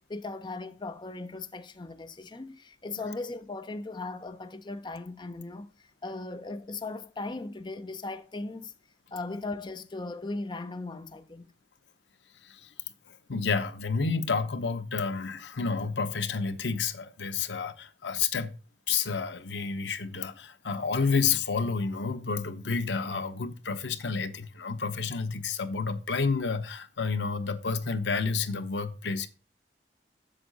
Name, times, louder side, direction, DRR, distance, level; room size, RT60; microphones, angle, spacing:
voice 1, 0.1-8.7 9.1-11.4, left 3 dB, 25° left, 0.5 m, -38 dB
voice 2, 13.3-18.6 18.9-29.3, left 5 dB, 90° left, 0.9 m, -30 dB
7.9 x 7.4 x 4.0 m
head